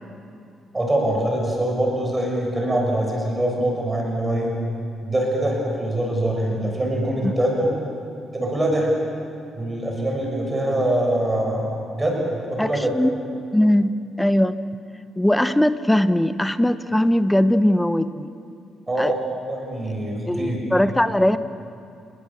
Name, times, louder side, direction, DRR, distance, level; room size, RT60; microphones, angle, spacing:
voice 1, 0.7-4.5 5.0-7.8 8.3-8.9 9.5-11.7 11.9-12.9 18.9-19.2 19.5-20.6, right 1 dB, 20° right, 0 dB, 6.7 m, -23 dB
voice 2, 12.6-13.1 13.5-14.6 15.2-18.3 19.0-19.1 19.8-19.9 20.2-21.4, left 1 dB, 5° left, 12 dB, 0.9 m, -20 dB
30.0 x 20.5 x 7.2 m, 2.5 s
cardioid pair, 90°, 0 cm